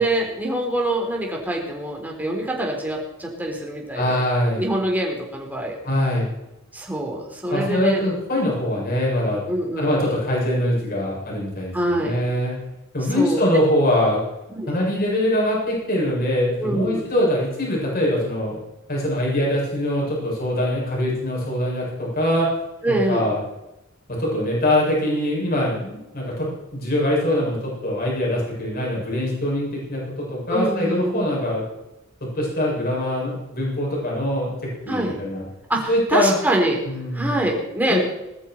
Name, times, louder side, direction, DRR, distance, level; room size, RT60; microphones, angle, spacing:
voice 1, 0.0-4.2 4.6-5.8 6.7-8.0 9.5-9.9 11.7-12.2 13.1-13.4 14.5-14.7 16.6-17.0 22.8-23.3 30.5-31.2 34.9-35.2 35.7-36.8 37.1-38.0, right 1 dB, 10° right, -1 dB, 4.1 m, -24 dB
voice 2, 3.9-4.6 5.8-6.3 7.5-9.4 9.8-12.6 12.9-14.2 14.7-18.6 18.9-22.5 22.9-23.4 24.1-31.6 32.2-35.4 35.9-36.3 36.9-37.4 37.9-38.0, left 1 dB, 45° left, -3 dB, 7.6 m, -23 dB
20.0 x 13.5 x 4.7 m, 0.93 s
head